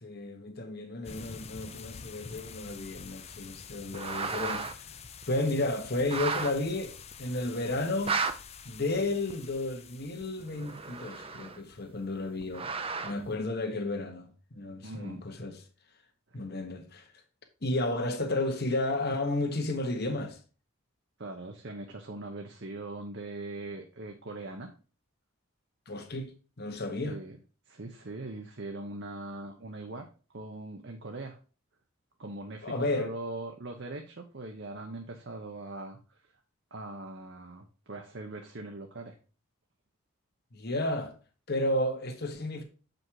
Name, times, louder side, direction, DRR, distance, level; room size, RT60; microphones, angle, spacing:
voice 1, 0.0-4.8 5.3-8.2 8.6-12.7 13.0-14.3 14.5-15.6 16.3-17.1 17.6-20.4 25.9-26.3 26.6-27.2 32.6-33.1 40.5-41.1 41.5-42.6, left 2 dB, 45° left, 1.4 m, -32 dB
sound 1, 1.0-11.0, left 6 dB, 30° left, 0.5 m, -47 dB
sound 2, 3.7-4.7 5.2-5.3 6.0-6.5 7.1-7.2 7.8-8.3 9.3-9.4 10.2-11.7 12.4-13.3, right 4 dB, 25° right, 0.6 m, -33 dB
voice 2, 14.8-15.2 16.3-16.4 21.2-24.7 27.0-27.4 27.7-30.1 30.3-31.4 32.2-36.2 36.7-39.1, right 2 dB, 55° right, 1.0 m, -41 dB
7.3 x 5.3 x 4.7 m
head